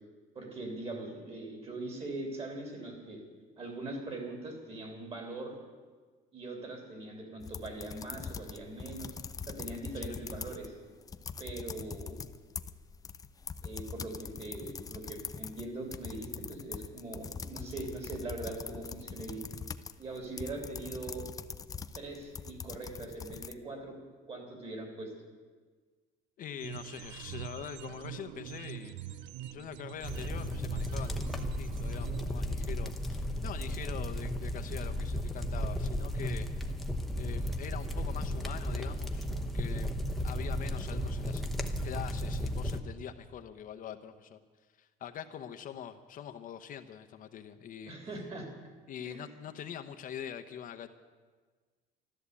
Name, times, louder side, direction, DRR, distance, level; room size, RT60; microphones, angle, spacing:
voice 1, 0.3-3.2 3.6-5.5 6.3-9.1 9.5-10.7 11.4-12.2 13.6-19.4 20.0-21.3 21.9-24.0 24.3-25.1 47.9-48.5 49.0-49.2, right 2 dB, 35° right, 3 dB, 3.5 m, -41 dB
sound 1, 7.4-10.7 11.0-23.5, left 5 dB, 20° left, 0.5 m, -43 dB
voice 2, 9.9-10.3 26.4-29.0 29.5-36.7 37.1-41.5 41.8-44.4 44.8-47.9 48.9-50.9, left 9 dB, 50° left, 7 dB, 0.8 m, -44 dB
sound 2, 26.6-32.3, right 13 dB, 85° right, 0.6 m, -44 dB
sound 3, 30.0-42.8, equal, ahead, 0.9 m, -34 dB
13.5 x 12.5 x 8.3 m, 1.5 s
cardioid pair, 150°, 18 cm